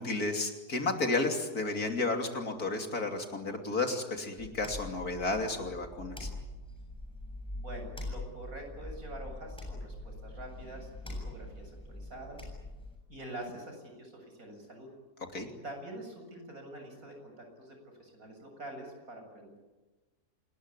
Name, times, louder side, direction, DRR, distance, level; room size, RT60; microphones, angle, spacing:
voice 1, 0.0-6.3 15.3-15.5, left 3 dB, 65° left, 4 dB, 3.5 m, -32 dB
sound 1, 4.4-13.0, left 1 dB, 5° left, 7.5 m, -43 dB
voice 2, 7.6-12.5 13.1-14.9 15.6-19.6, right 1 dB, 60° right, 3 dB, 7.8 m, -46 dB
28.0 x 20.5 x 9.9 m, 1.2 s
omnidirectional pair, 1.7 m